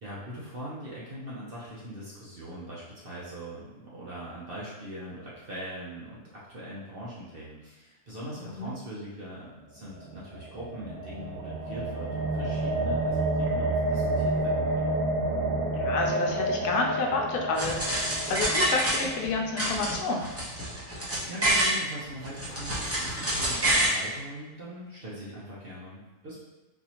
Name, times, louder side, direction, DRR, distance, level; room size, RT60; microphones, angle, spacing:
voice 1, 0.0-14.9 21.3-26.4, right 1 dB, 50° right, -7 dB, 0.8 m, -41 dB
sound 1, 9.9-20.1, right 2 dB, 90° right, 1.3 m, -30 dB
voice 2, 15.8-20.2, left 3 dB, 85° left, 1 dB, 1.2 m, -30 dB
sound 2, 17.5-19.3 19.6-21.8 22.2-24.0, right 1 dB, 20° right, 0.4 m, -27 dB
4.1 x 2.7 x 2.9 m, 1.1 s
omnidirectional pair, 1.6 m